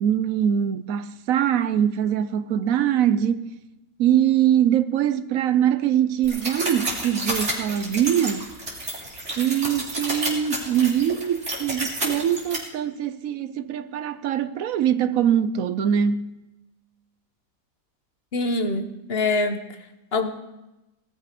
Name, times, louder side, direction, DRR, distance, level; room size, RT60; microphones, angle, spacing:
voice 1, 0.0-3.5 4.0-8.5 9.4-16.3, right 9 dB, 70° right, 1.0 m, -23 dB
sound 1, 6.2-12.6, right 1 dB, 50° right, 3.7 m, -30 dB
voice 2, 18.3-19.6 20.1-20.3, left 2 dB, 45° left, 1.1 m, -24 dB
18.5 x 12.5 x 5.0 m
omnidirectional pair, 1.5 m